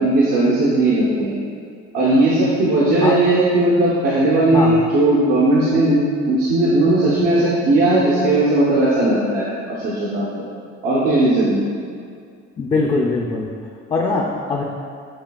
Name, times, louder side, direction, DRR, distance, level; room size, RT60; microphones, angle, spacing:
voice 1, 0.0-1.3 1.9-10.3 10.8-11.7, right 2 dB, 85° right, -9 dB, 0.9 m, -17 dB
voice 2, 12.6-13.6 13.9-14.6, left 3 dB, 20° left, -1 dB, 0.4 m, -21 dB
7.4 x 2.7 x 2.3 m, 2.3 s
cardioid pair, 90°, 30 cm